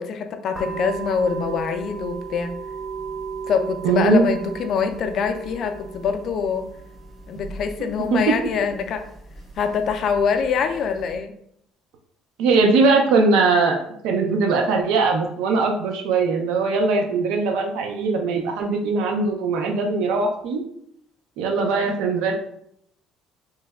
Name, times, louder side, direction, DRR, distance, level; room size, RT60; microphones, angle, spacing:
voice 1, 0.0-2.6 3.5-6.7 7.3-9.1 9.6-11.4 21.5-21.7, left 6 dB, 40° left, 7 dB, 0.3 m, -24 dB
sound 1, 0.5-11.2, right 5 dB, 20° right, 0.6 m, -36 dB
voice 2, 3.8-4.3 8.1-8.2 12.4-20.6 21.4-22.3, right 4 dB, 80° right, 3 dB, 0.5 m, -20 dB
3.1 x 2.1 x 3.4 m, 0.71 s
cardioid pair, 170°, 0 cm